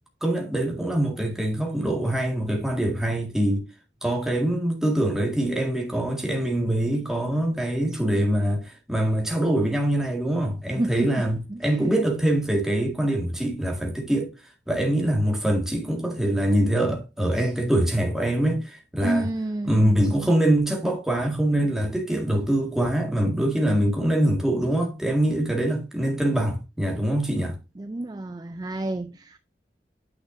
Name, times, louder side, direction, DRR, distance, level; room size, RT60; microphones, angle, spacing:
voice 1, 0.2-3.6 4.0-14.3 14.7-19.3 19.6-27.6, right 1 dB, 5° right, 1.8 m, -24 dB
voice 2, 10.8-11.1 11.7-11.9 19.0-20.2 27.8-29.4, right 2 dB, 20° right, 0.4 m, -29 dB
9.2 x 5.9 x 2.6 m
head